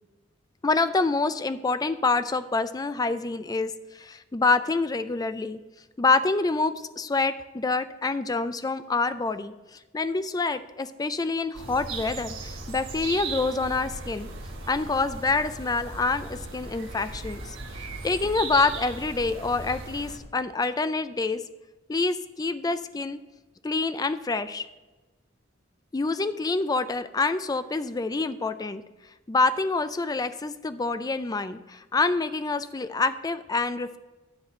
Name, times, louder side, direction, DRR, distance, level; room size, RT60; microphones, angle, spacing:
voice 1, 0.6-5.6 6.0-14.3 14.7-21.4 21.9-23.2 23.6-24.7 25.9-28.8 29.3-34.0, left 3 dB, 20° left, 12 dB, 0.4 m, -27 dB
sound 1, 11.5-20.2, right 3 dB, 80° right, 1.3 m, -37 dB
10.5 x 4.2 x 6.2 m, 1.1 s
head